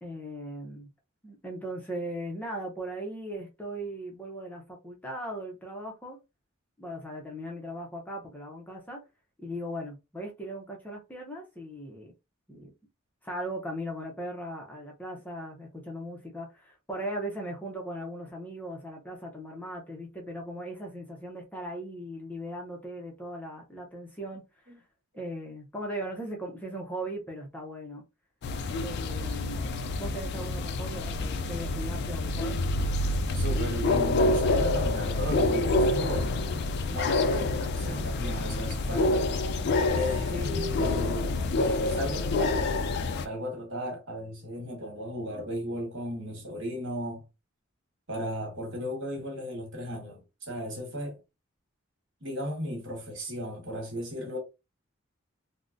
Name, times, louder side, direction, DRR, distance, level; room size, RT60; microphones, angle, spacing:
voice 1, 0.0-0.9 1.2-6.2 6.8-9.0 9.4-12.1 12.5-12.7 13.2-24.7 25.1-28.0 28.8-32.6 40.3-40.6, right 1 dB, 10° left, 0.6 m, -38 dB
sound 1, 28.4-43.3, left 2 dB, 50° left, 0.3 m, -27 dB
voice 2, 33.3-36.4 36.9-39.2 39.9-41.3 41.9-42.7 43.2-47.2 48.1-51.2 52.2-54.4, equal, 60° right, 1.4 m, -35 dB
3.7 x 2.0 x 2.5 m
head